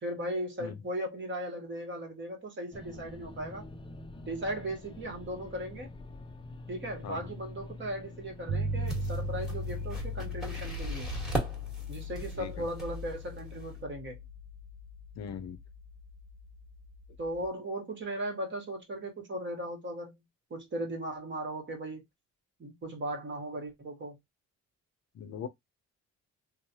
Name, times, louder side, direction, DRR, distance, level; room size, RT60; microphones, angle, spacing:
voice 1, 0.0-3.7 4.3-5.9 6.7-11.1 11.9-14.2 17.2-20.1 20.5-22.0 22.6-24.2, right 1 dB, 40° right, 1.2 m, -37 dB
sound 1, 2.7-12.2, left 2 dB, 15° left, 0.4 m, -47 dB
sound 2, 8.5-17.5, left 1 dB, 75° right, 0.5 m, -38 dB
sound 3, 8.8-13.8, right 2 dB, ahead, 1.3 m, -39 dB
voice 2, 15.2-15.6 25.1-25.5, left 7 dB, 60° left, 0.6 m, -40 dB
3.1 x 2.0 x 2.8 m
cardioid pair, 90°, 30 cm